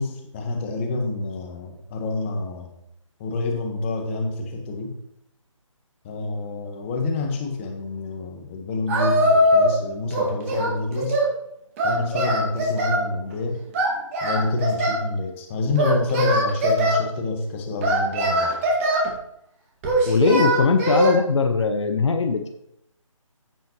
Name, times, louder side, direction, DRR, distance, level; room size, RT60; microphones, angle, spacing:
voice 1, 0.0-2.7 3.2-4.9 6.0-11.2 11.8-13.6 14.2-18.6, left 3 dB, 25° left, 3 dB, 1.4 m, -27 dB
Singing, 8.9-9.8 10.1-11.3 11.8-13.0 13.7-15.0 15.7-17.0 17.8-19.1 19.8-21.2, right 1 dB, 25° right, 2.1 m, -21 dB
voice 2, 20.1-22.5, left 4 dB, 60° left, 6 dB, 0.9 m, -20 dB
15.0 x 5.5 x 3.1 m, 0.78 s
figure-of-eight pair, 155°, 17 cm